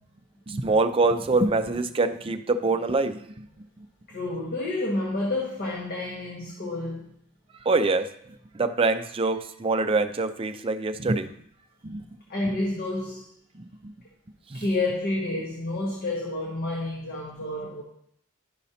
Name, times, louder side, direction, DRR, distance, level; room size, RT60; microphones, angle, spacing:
voice 1, 0.5-3.9 7.6-11.3 11.8-12.0 12.4-12.6 13.5-13.9 14.5-14.7, right 3 dB, 25° right, 0.4 m, -25 dB
voice 2, 4.1-7.1 12.3-13.3 14.5-17.8, left 2 dB, 50° left, 1.3 m, -29 dB
11.5 x 5.2 x 2.8 m
head